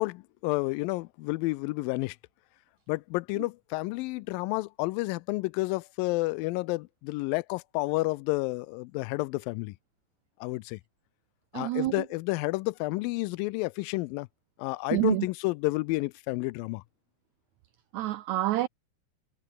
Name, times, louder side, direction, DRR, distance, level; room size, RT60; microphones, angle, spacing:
voice 1, 0.0-2.2 2.9-9.7 10.4-10.8 11.5-14.3 14.6-16.8, left 22 dB, 90° left, 2.3 m, -30 dB
voice 2, 11.5-11.9 14.9-15.2 17.9-18.7, right 16 dB, 85° right, 1.7 m, -27 dB
omnidirectional pair, 4.0 m